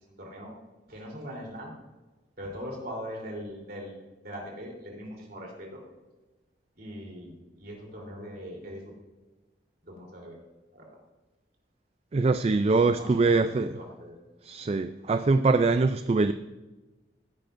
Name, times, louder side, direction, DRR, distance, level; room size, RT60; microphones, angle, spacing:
voice 1, 0.2-0.5 0.9-1.7 2.4-5.8 6.8-8.9 9.9-10.4 10.7-11.0 12.9-14.2, equal, 60° right, 3.6 m, -41 dB
voice 2, 12.1-13.8 14.4-16.3, right 3 dB, 35° right, 0.4 m, -23 dB
16.0 x 11.5 x 2.6 m
head